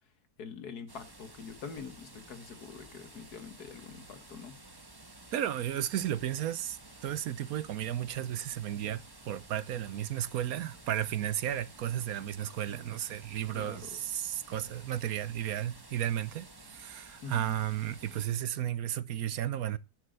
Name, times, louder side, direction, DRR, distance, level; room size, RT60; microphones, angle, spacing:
voice 1, 0.4-4.6 13.5-14.0 17.2-17.6, left 6 dB, 85° left, 2.0 m, -45 dB
sound 1, 0.9-18.3, right 2 dB, 15° right, 1.2 m, -53 dB
voice 2, 5.3-19.8, right 11 dB, 70° right, 1.2 m, -34 dB
10.5 x 6.4 x 6.3 m
omnidirectional pair, 1.6 m